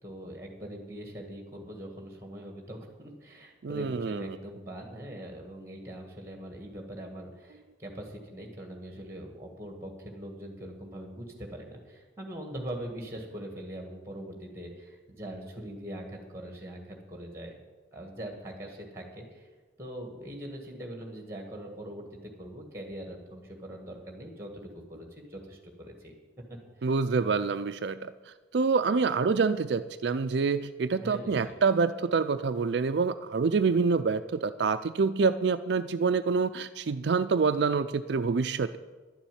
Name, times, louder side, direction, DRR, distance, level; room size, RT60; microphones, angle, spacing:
voice 1, 0.0-17.5 17.9-19.5 19.8-26.1 26.8-26.9 31.0-31.6, right 1 dB, 15° right, 3 dB, 1.9 m, -42 dB
voice 2, 3.6-4.4 26.8-38.8, right 5 dB, 65° right, 10 dB, 0.4 m, -27 dB
11.5 x 7.1 x 9.3 m, 1.3 s
head